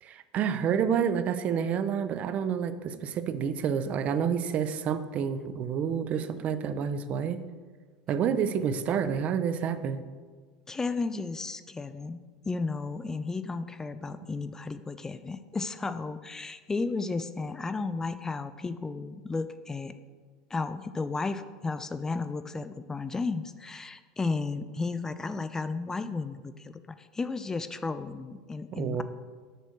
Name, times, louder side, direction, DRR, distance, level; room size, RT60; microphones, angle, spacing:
voice 1, 0.0-7.4 8.1-10.0 28.7-29.0, right 7 dB, 45° right, 12 dB, 0.6 m, -29 dB
voice 2, 10.7-12.2 12.5-19.9 20.5-29.0, left 3 dB, 15° left, 12 dB, 0.4 m, -33 dB
6.7 x 6.3 x 6.4 m, 1.5 s
supercardioid pair, 105°, 3 cm